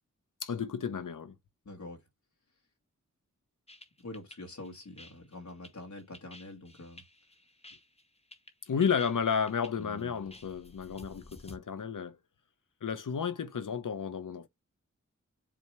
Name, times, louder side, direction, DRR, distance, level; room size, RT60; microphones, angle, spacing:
voice 1, 0.4-1.4 8.7-12.2 12.8-14.5, left 6 dB, 85° left, 0.8 m, -32 dB
voice 2, 1.6-2.0 4.0-7.0 9.8-10.3, left 2 dB, 65° left, 1.6 m, -45 dB
sound 1, 3.7-11.6, left 1 dB, 20° left, 1.0 m, -53 dB
7.6 x 2.8 x 4.7 m
wide cardioid pair, 65°, 31 cm